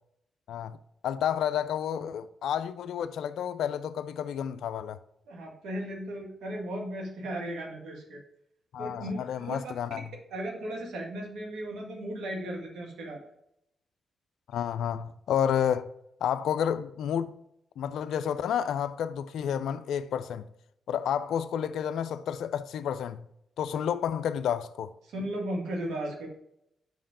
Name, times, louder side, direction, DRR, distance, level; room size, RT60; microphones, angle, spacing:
voice 1, 1.0-5.0 8.7-10.0 14.5-15.9 16.2-17.4 17.8-20.4 20.9-23.3 23.6-24.9, left 9 dB, 75° left, 0.3 m, -30 dB
voice 2, 5.3-8.2 8.8-9.6 10.3-13.2 25.1-26.3, right 1 dB, 80° right, 1.6 m, -36 dB
5.6 x 5.4 x 5.0 m
hypercardioid pair, 40°, 0 cm